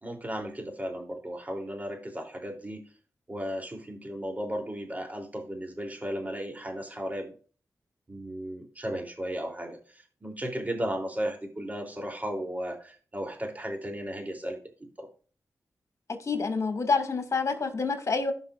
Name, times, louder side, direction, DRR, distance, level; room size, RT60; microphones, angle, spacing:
voice 1, 0.0-2.8 3.3-7.3 8.1-14.6 15.0-15.1, equal, 25° right, 3.2 m, -35 dB
voice 2, 16.1-18.3, left 4 dB, 55° left, 2.1 m, -28 dB
15.5 x 5.5 x 2.5 m
cardioid pair, 50°, 6 cm